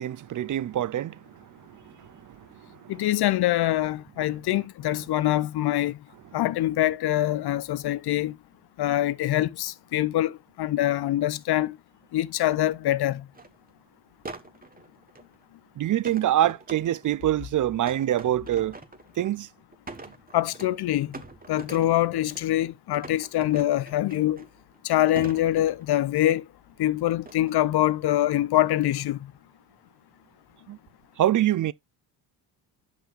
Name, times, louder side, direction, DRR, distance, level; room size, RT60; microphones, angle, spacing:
voice 1, 0.0-2.9 15.8-18.8 19.2-19.5 30.7-30.8 31.2-31.7, right 12 dB, 40° right, 0.5 m, -26 dB
voice 2, 2.9-6.0 6.3-8.4 8.8-11.8 12.1-13.3 20.3-21.1 21.5-24.5 24.8-26.5 26.8-29.3, left 14 dB, 50° left, 0.6 m, -24 dB
sound 1, 13.3-13.6 14.2-15.4 16.0-17.2 17.9-19.4 19.7-20.8 21.1-22.5 22.9-24.8 25.2-26.2 27.3-27.6 28.0-28.4, right 3 dB, 20° right, 1.2 m, -43 dB
10.5 x 5.6 x 2.4 m
supercardioid pair, 60°, 49 cm